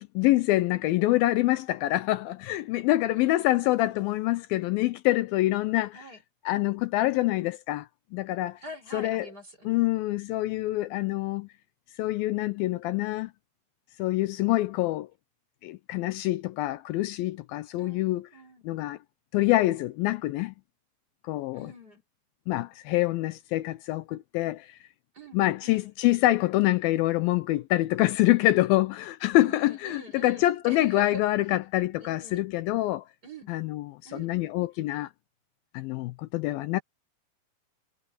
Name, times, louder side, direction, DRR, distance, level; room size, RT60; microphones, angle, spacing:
voice 1, 0.0-6.0 6.5-7.8 8.1-8.6 8.9-9.3 9.7-11.5 12.0-13.3 14.0-15.1 15.6-18.2 18.7-19.0 19.3-20.5 21.3-21.7 22.5-24.7 25.3-33.0 33.5-35.1 35.7-36.8, left 17 dB, 80° left, 2.4 m, -26 dB
voice 2, 3.1-4.0 5.9-6.2 7.0-7.6 8.6-9.9 17.8-18.6 21.5-22.0 25.1-25.9 29.4-31.2 32.0-32.4 33.2-33.5 34.0-34.3, right 1 dB, 25° right, 6.5 m, -45 dB
omnidirectional pair, 4.3 m